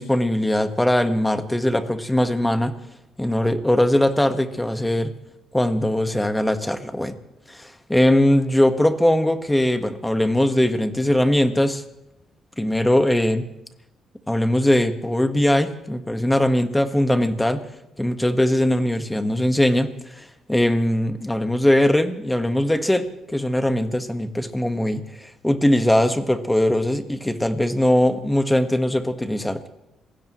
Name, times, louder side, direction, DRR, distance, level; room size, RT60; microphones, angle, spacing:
voice 1, 0.0-2.7 3.2-5.1 5.5-7.1 7.5-11.8 12.6-13.4 14.3-17.6 18.0-29.7, left 1 dB, 10° left, 8 dB, 1.4 m, -20 dB
27.0 x 17.0 x 3.1 m, 0.88 s
cardioid pair, 90°, 0 cm